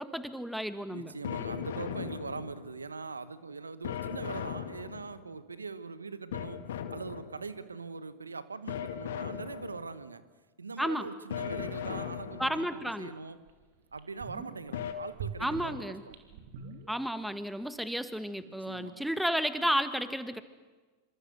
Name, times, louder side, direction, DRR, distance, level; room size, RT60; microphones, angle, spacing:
voice 1, 0.0-1.1 10.8-11.1 12.4-13.1 15.4-16.0 16.9-20.4, equal, ahead, 1.8 m, -32 dB
voice 2, 0.9-10.3 10.6-13.4 13.9-16.1 18.4-19.0, right 4 dB, 90° right, 1.3 m, -42 dB
sound 1, 1.2-2.8 3.8-5.4 6.3-7.6 8.7-10.0 11.3-12.8 14.7-14.9, left 9 dB, 70° left, 2.0 m, -38 dB
sound 2, 12.9-13.0 13.5-13.6 13.9-14.7 15.1-17.4 17.6-17.7, right 6 dB, 60° right, 2.8 m, -43 dB
27.0 x 26.0 x 6.5 m
figure-of-eight pair, 90°, 0 cm